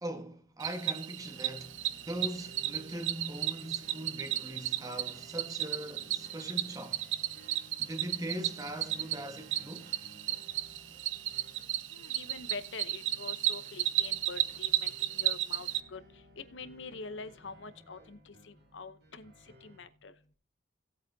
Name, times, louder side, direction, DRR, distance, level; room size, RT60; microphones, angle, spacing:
voice 1, 0.0-1.8 2.1-7.0 7.8-10.0, right 1 dB, 20° right, 1.3 m, -40 dB
Cricket, 0.6-15.8, right 13 dB, 75° right, 0.7 m, -34 dB
sound 1, 1.2-19.8, equal, 55° right, 2.7 m, -57 dB
voice 2, 11.9-16.0 16.4-19.3 19.6-20.1, left 4 dB, 65° left, 0.8 m, -45 dB
17.0 x 8.3 x 2.7 m
head